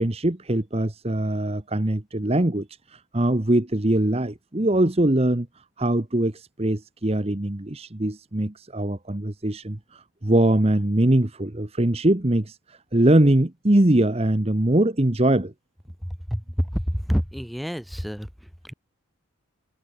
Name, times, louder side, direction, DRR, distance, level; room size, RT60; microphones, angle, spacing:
voice 1, 0.0-15.5, right 1 dB, 30° right, 1.1 m, -22 dB
voice 2, 17.1-18.3, equal, ahead, 3.2 m, -27 dB
head